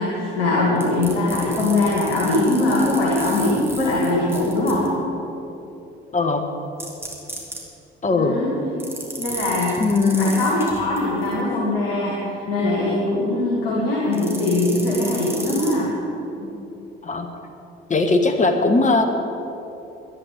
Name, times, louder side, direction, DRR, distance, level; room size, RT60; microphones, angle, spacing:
voice 1, 0.0-4.9 8.2-8.5 9.2-9.8 10.2-15.9 16.4-16.5, left 2 dB, 80° left, -5 dB, 2.4 m, -21 dB
sound 1, 0.8-4.9 6.8-7.6 8.8-11.3 14.1-15.8, right 1 dB, 10° right, 3.5 m, -34 dB
voice 2, 6.1-6.4 8.0-8.3 9.8-10.5 17.0-17.3 17.9-19.0, left 3 dB, 25° left, 5 dB, 1.5 m, -19 dB
12.5 x 10.0 x 8.5 m, 3.0 s
figure-of-eight pair, 50°, 29 cm